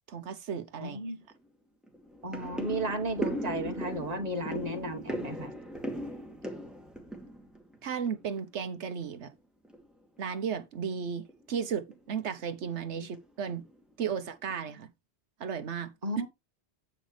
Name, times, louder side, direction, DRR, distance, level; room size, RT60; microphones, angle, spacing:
voice 1, 0.1-1.0 7.8-9.3 10.2-13.6 14.0-14.9 15.4-15.9, right 7 dB, 80° right, 1.2 m, -34 dB
sound 1, 0.8-0.9 1.3-1.5 1.8-8.4 8.6-9.3 9.6-9.9 10.2-10.3 10.7-10.9 11.3-11.4 11.9-12.4 13.0-13.2 13.5-14.2 14.5-14.6, equal, ahead, 2.4 m, -38 dB
voice 2, 0.8-1.2 2.2-5.5 13.0-13.1 16.0-16.3, right 1 dB, 35° right, 1.5 m, -34 dB
10.0 x 7.7 x 3.3 m
omnidirectional pair, 1.1 m